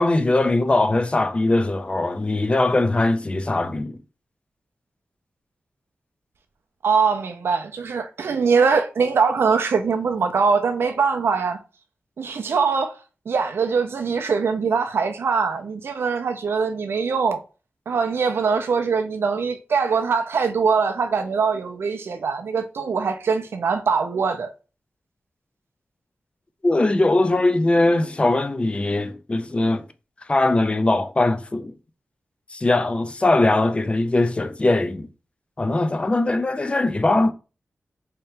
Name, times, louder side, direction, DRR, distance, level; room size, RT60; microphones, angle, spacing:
voice 1, 0.0-4.0 26.6-29.8 30.3-31.7 32.5-35.1 35.6-37.3, left 2 dB, 25° left, 0.4 m, -21 dB
voice 2, 6.8-11.6 12.2-13.0 13.3-17.4 17.9-24.5, right 5 dB, 75° right, 0.4 m, -22 dB
3.3 x 2.8 x 3.2 m
wide cardioid pair, 85°, 4 cm